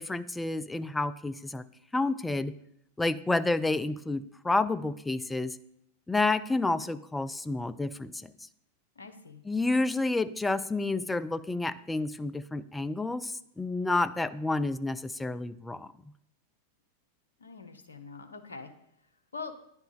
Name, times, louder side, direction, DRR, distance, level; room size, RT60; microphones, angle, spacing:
voice 1, 0.0-1.6 1.9-2.5 3.0-5.6 6.1-8.3 9.4-15.9, left 2 dB, 10° left, 14 dB, 0.3 m, -30 dB
voice 2, 9.0-9.4 17.4-18.7 19.3-19.5, left 4 dB, 75° left, 6 dB, 0.7 m, -43 dB
10.0 x 3.6 x 5.4 m, 0.76 s
figure-of-eight pair, 90°, 0 cm